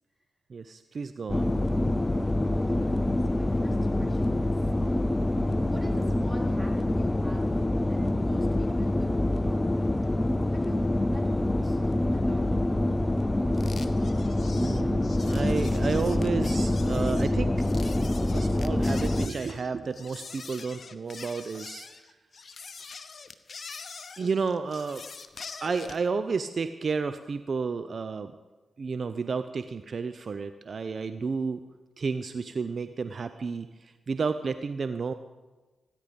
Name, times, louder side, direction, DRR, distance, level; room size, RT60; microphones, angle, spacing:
voice 1, 0.5-1.6 14.6-17.5 18.3-22.1 24.2-25.0 25.6-28.3 28.8-31.6 32.0-35.1, right 5 dB, 55° right, 11 dB, 0.6 m, -31 dB
sound 1, 1.3-19.3, left 1 dB, 20° left, 0.6 m, -26 dB
voice 2, 2.4-4.9 5.7-9.9 10.5-11.8 12.1-12.8, right 1 dB, 5° right, 0 dB, 4.1 m, -46 dB
sound 2, 13.5-26.1, left 4 dB, 55° left, 0.9 m, -44 dB
17.0 x 10.0 x 5.2 m, 1.2 s
supercardioid pair, 45°, 0 cm